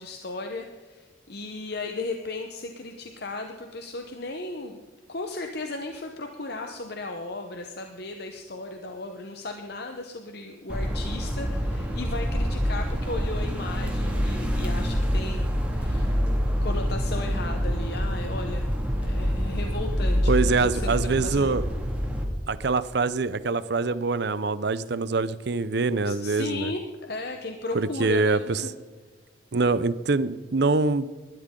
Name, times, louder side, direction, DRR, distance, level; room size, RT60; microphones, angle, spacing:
voice 1, 0.0-4.8 5.1-16.2 16.6-18.7 19.0-21.6 26.0-28.7, left 2 dB, 50° left, 4 dB, 1.0 m, -36 dB
sound 1, 10.7-22.2, equal, 5° right, 2.0 m, -26 dB
voice 2, 20.3-21.6 22.5-26.7 27.7-28.6 29.5-31.1, right 3 dB, 55° right, 16 dB, 0.6 m, -24 dB
19.5 x 12.5 x 3.8 m, 1.4 s
head